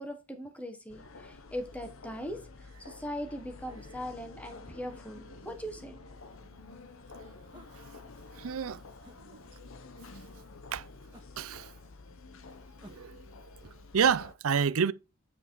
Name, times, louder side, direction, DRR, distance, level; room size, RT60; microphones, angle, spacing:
voice 1, 0.0-6.0, equal, 5° left, 1.4 m, -40 dB
sound 1, 0.9-14.4, left 3 dB, 70° left, 0.9 m, -50 dB
sound 2, 7.5-7.8 9.0-9.2 11.1-11.5 12.8-13.2, equal, 20° right, 1.8 m, -54 dB
voice 2, 8.4-8.8 10.7-10.9 11.4-11.7 12.9-13.2 13.9-14.9, right 6 dB, 75° right, 0.5 m, -28 dB
9.5 x 5.2 x 4.7 m
head